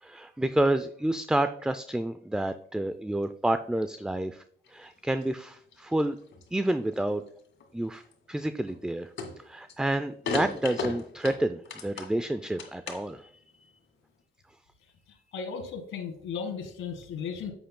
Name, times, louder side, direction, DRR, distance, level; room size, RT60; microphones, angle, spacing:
voice 1, 0.0-4.4 4.7-6.2 6.5-7.2 7.7-8.0 8.3-13.3, right 1 dB, 5° right, 10 dB, 0.4 m, -29 dB
sound 1, 4.7-5.3 5.7-7.3 7.6-8.1 8.6-8.9 9.2-9.7 10.2-12.2 12.5-13.2, left 4 dB, 70° left, 2.1 m, -36 dB
voice 2, 15.1-17.5, left 6 dB, 85° left, 5 dB, 1.5 m, -36 dB
10.0 x 7.9 x 2.2 m, 0.62 s
cardioid pair, 90°, 20 cm